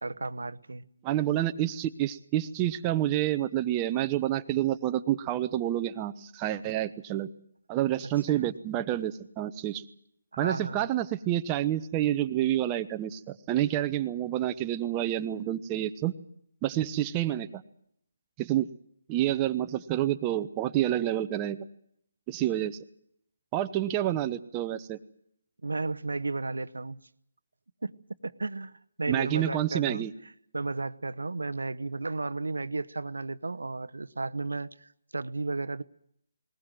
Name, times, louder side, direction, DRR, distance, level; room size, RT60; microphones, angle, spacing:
voice 1, 0.0-0.9 8.3-8.4 10.3-10.8 25.6-27.0 27.8-27.9 28.2-35.8, right 3 dB, 75° right, 0.9 m, -34 dB
voice 2, 1.0-7.3 7.7-9.8 10.4-16.1 16.6-17.6 18.4-18.7 19.1-21.6 22.3-22.8 23.5-25.0 29.1-30.1, right 13 dB, 20° right, 0.9 m, -28 dB
20.5 x 20.0 x 7.7 m
figure-of-eight pair, 150°, 0 cm